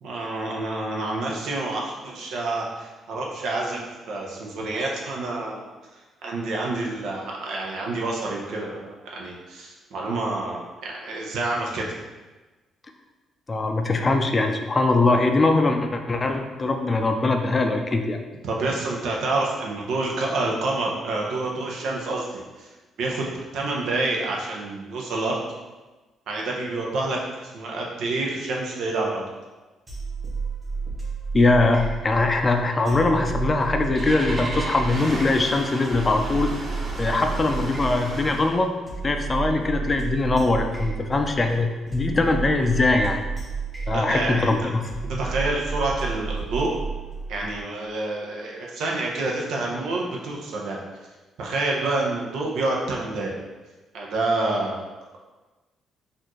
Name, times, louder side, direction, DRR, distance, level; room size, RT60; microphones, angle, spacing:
voice 1, 0.0-5.7 6.2-11.9 18.4-22.7 23.0-23.3 23.5-25.4 26.3-29.3 43.9-44.5 45.2-46.7 47.3-50.8 51.4-53.3 53.9-54.8, right 2 dB, 80° right, -2 dB, 0.7 m, -28 dB
voice 2, 13.5-18.2 31.3-36.6 37.0-38.7 39.0-43.3 43.9-44.7, left 3 dB, 30° left, 4 dB, 0.4 m, -22 dB
sound 1, 29.9-47.6, right 5 dB, 25° right, 1.4 m, -32 dB
Engine starting, 33.9-38.6, right 1 dB, 45° right, 0.9 m, -34 dB
4.2 x 2.6 x 3.0 m, 1.2 s
cardioid pair, 90°, 0 cm